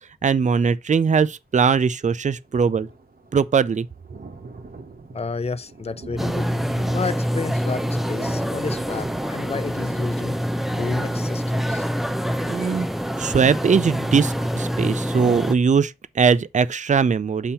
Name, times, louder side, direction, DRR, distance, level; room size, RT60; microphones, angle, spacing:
voice 1, 0.2-2.9 3.3-3.9 12.5-12.9 13.2-17.5, right 6 dB, 50° right, 0.4 m, -20 dB
Thunder, 1.9-14.6 15.0-15.1 15.5-15.6, right 4 dB, 65° right, 0.9 m, -43 dB
voice 2, 5.1-6.5 6.9-10.4 10.8-11.9, left 4 dB, 40° left, 0.4 m, -31 dB
sound 1, 6.2-15.5, equal, ahead, 0.6 m, -26 dB
7.0 x 2.8 x 5.5 m
wide cardioid pair, 65°, 16 cm